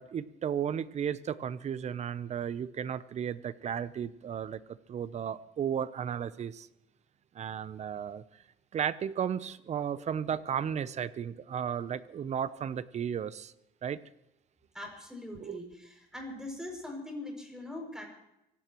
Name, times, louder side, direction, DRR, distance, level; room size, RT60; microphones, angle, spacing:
voice 1, 0.0-4.6 4.9-6.7 7.3-8.2 8.7-13.5 13.8-14.0 15.4-15.6, right 8 dB, 40° right, 16 dB, 0.7 m, -34 dB
voice 2, 14.7-18.0, left 1 dB, 5° right, 2 dB, 6.4 m, -42 dB
25.0 x 17.0 x 3.1 m, 0.87 s
cardioid pair, 110°, 17 cm